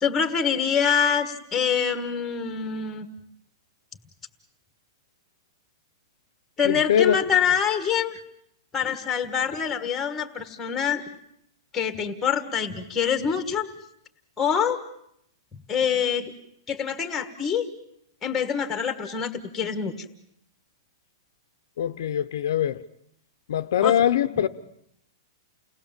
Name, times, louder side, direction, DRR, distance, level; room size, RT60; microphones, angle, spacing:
voice 1, 0.0-3.1 6.6-8.2 8.7-11.0 11.7-13.7 14.4-14.8 15.7-16.3 16.7-17.6 18.2-20.1 23.8-23.9, left 7 dB, 10° left, 1.5 m, -25 dB
voice 2, 6.6-7.2 21.8-22.8 23.5-24.5, left 10 dB, 60° left, 0.9 m, -22 dB
29.5 x 19.5 x 7.4 m
supercardioid pair, 180°, 2 cm